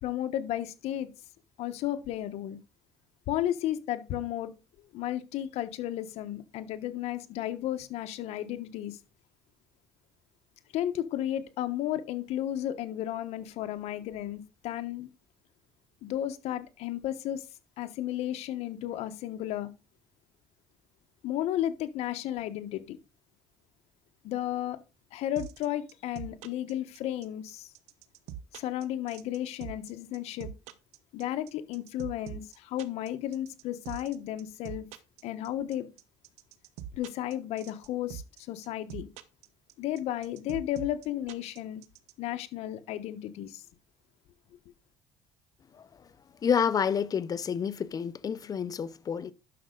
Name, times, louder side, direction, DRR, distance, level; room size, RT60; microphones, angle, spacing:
voice 1, 0.0-1.1 1.6-2.6 3.3-4.5 4.9-9.0 10.7-15.1 16.0-17.4 17.8-19.7 21.2-23.0 24.2-24.8 25.1-27.7 28.5-30.5 31.1-34.9 35.2-35.9 36.9-38.2 38.5-39.1 39.8-41.8 42.2-43.6, left 12 dB, 75° left, 1.2 m, -33 dB
sound 1, 25.4-42.1, right 10 dB, 85° right, 1.0 m, -42 dB
voice 2, 46.4-49.3, left 7 dB, 35° left, 0.7 m, -29 dB
11.0 x 6.3 x 3.9 m
cardioid pair, 125°, 11 cm